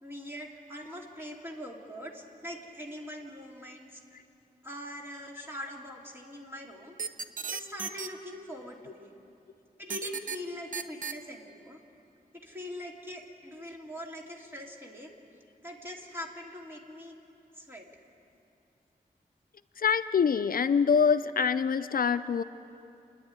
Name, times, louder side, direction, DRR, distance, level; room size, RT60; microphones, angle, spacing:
voice 1, 0.0-4.0 4.6-7.0 7.5-9.1 9.8-11.8 12.4-15.1 15.6-17.2 17.5-17.9, left 1 dB, 15° right, -1 dB, 2.6 m, -42 dB
sound 1, 7.0-8.1 9.9-10.4 10.7-11.1, right 6 dB, 60° right, 0.8 m, -34 dB
voice 2, 19.8-22.4, left 6 dB, 70° left, 12 dB, 0.5 m, -25 dB
29.5 x 10.5 x 9.6 m, 2.6 s
wide cardioid pair, 120°, 15 cm